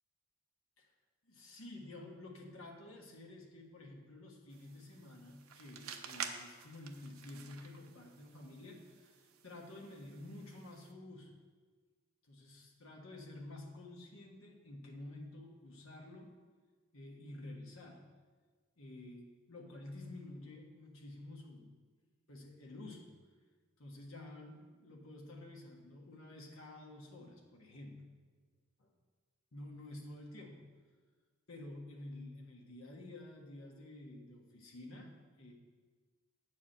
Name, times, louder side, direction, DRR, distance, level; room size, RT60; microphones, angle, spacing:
voice 1, 1.2-9.1 9.4-11.4 12.3-16.3 16.9-18.1 18.8-21.8 22.3-23.1 23.8-28.1 29.5-30.7 31.5-35.5, left 1 dB, 75° left, 0 dB, 1.6 m, -50 dB
sound 1, 4.5-10.9, right 7 dB, 85° right, 0.7 m, -50 dB
8.4 x 4.9 x 7.3 m, 1.4 s
head